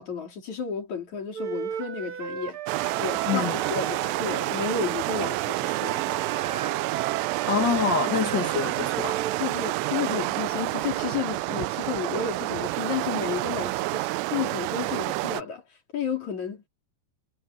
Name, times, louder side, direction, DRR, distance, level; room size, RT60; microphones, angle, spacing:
voice 1, 0.0-2.6 3.0-6.2 9.4-15.6 15.9-16.7, left 7 dB, 45° left, 5.1 m, -32 dB
Wind instrument woodwind instrument, 1.3-4.9 5.6-9.4, right 7 dB, 45° right, 1.8 m, -36 dB
sound 1, 2.7-15.4, right 21 dB, 85° right, 2.8 m, -28 dB
voice 2, 3.3-3.6 7.5-9.2, left 6 dB, 90° left, 0.9 m, -26 dB
omnidirectional pair, 4.9 m